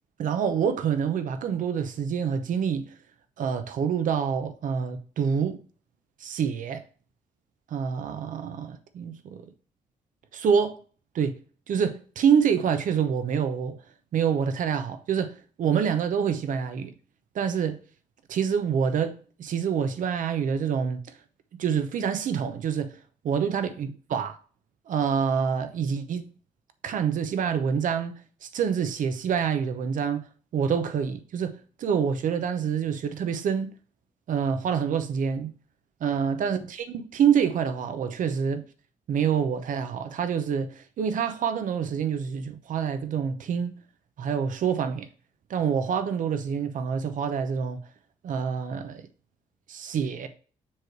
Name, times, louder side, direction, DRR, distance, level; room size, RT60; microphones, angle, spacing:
voice 1, 0.2-2.9 3.4-5.6 6.2-6.8 7.7-9.4 10.3-10.8 11.1-11.3 11.7-13.8 14.1-16.9 17.3-17.8 18.3-21.0 21.6-23.0 23.2-24.4 24.9-26.3 26.8-30.3 30.5-33.7 34.3-35.5 36.0-38.6 39.1-43.8 44.2-45.1 45.5-47.8 48.2-49.0 49.7-50.3, right 7 dB, 70° right, 0.8 m, -26 dB
7.4 x 3.2 x 4.6 m
cardioid pair, 65°, 14 cm